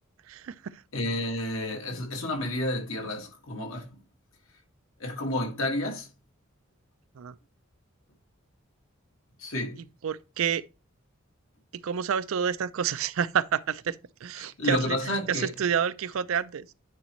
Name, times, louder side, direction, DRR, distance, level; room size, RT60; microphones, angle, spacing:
voice 1, 0.3-0.8 7.2-7.4 10.0-10.6 11.7-15.0 15.3-16.7, right 7 dB, 80° right, 0.4 m, -29 dB
voice 2, 0.9-4.0 5.0-6.1 9.4-9.8 14.4-15.5, left 1 dB, 75° left, 1.8 m, -30 dB
9.6 x 4.2 x 3.0 m
head